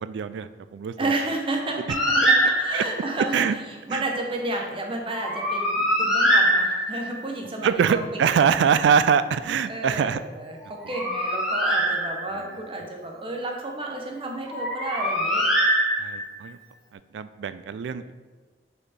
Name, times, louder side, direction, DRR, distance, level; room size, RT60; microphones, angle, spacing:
voice 1, 0.0-1.1 2.7-2.8 3.2-3.6 3.9-4.0 7.6-10.2 16.0-16.6 16.9-18.1, right 7 dB, 85° right, 13 dB, 0.3 m, -23 dB
voice 2, 1.0-3.6 3.9-8.5 9.7-15.5, right 2 dB, 30° right, 1 dB, 0.9 m, -31 dB
Bird, 1.9-3.1 5.1-7.2 10.6-12.5 14.5-16.4, right 1 dB, ahead, 1.4 m, -23 dB
5.3 x 4.5 x 4.2 m, 1.3 s
head